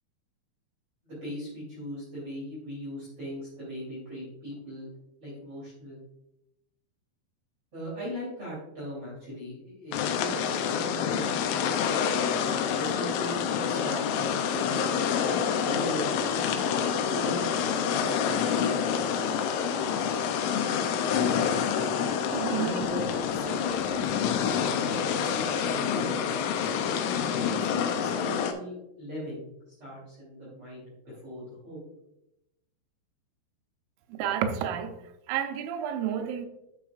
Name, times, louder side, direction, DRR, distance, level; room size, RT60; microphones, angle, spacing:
voice 1, 1.0-4.9 5.2-6.0 7.7-12.4 12.8-15.2 15.6-18.8 22.5-24.3 24.6-26.9 27.4-29.5 29.8-31.8, equal, 30° right, 3.3 m, -39 dB
sound 1, 9.9-28.5, left 7 dB, 80° left, 3.0 m, -27 dB
voice 2, 22.3-22.9 34.1-35.0 35.3-36.5, right 9 dB, 85° right, 3.3 m, -30 dB
11.0 x 6.2 x 2.4 m
omnidirectional pair, 5.7 m